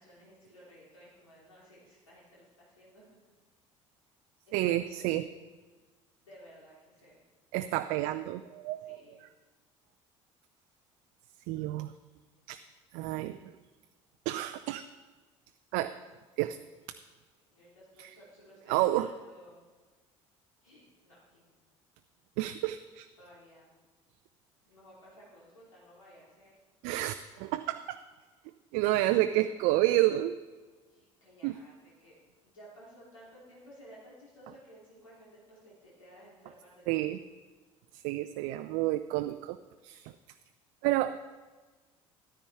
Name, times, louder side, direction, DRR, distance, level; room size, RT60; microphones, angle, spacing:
voice 1, 0.0-3.0 4.5-5.1 6.2-7.2 8.8-9.2 17.4-19.6 20.6-21.5 23.2-23.7 24.6-26.5 30.9-32.2 32.4-37.1, equal, 80° left, -6 dB, 2.9 m, -56 dB
voice 2, 4.5-5.3 7.5-9.0 11.5-11.9 12.5-12.6 12.9-13.5 14.3-14.8 15.7-15.9 16.4-16.6 18.0-18.1 18.7-19.1 22.4-23.1 26.8-28.0 28.7-30.3 31.4-31.6 36.9-37.2 37.9-39.6 39.8-40.1 40.8-41.2, right 15 dB, 60° right, 9 dB, 0.5 m, -29 dB
13.5 x 12.5 x 3.5 m, 1.3 s
figure-of-eight pair, 60°, 16 cm